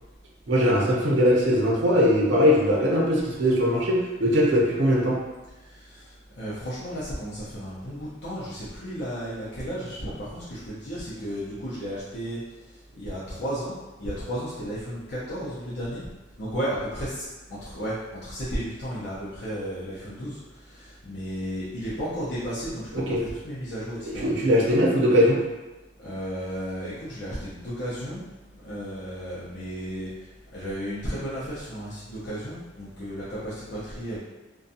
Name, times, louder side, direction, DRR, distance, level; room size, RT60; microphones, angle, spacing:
voice 1, 0.5-5.2 22.9-23.2 24.1-25.4, equal, 75° right, -3 dB, 0.7 m, -21 dB
voice 2, 5.6-16.1 16.4-24.3 24.6-24.8 26.0-28.2 28.6-34.2, equal, 60° left, -10 dB, 0.6 m, -34 dB
2.5 x 2.3 x 2.6 m, 1.1 s
head